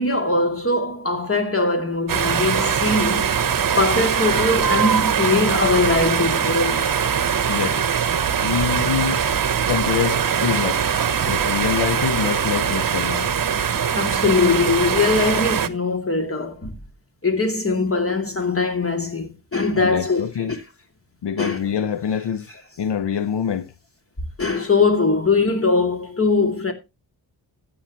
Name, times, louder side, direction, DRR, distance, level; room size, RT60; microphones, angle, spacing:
voice 1, 0.0-3.4 3.8-6.9 13.9-16.8 17.2-20.6 21.4-21.6 24.4-26.7, left 3 dB, 30° left, 2.8 m, -21 dB
sound 1, 2.1-15.7, right 7 dB, 50° right, 1.0 m, -21 dB
voice 2, 7.5-7.8 8.4-9.2 9.7-10.9 11.3-13.3 19.8-20.5 21.2-23.7, left 8 dB, 70° left, 0.7 m, -25 dB
14.0 x 8.8 x 3.0 m
wide cardioid pair, 105°, 43 cm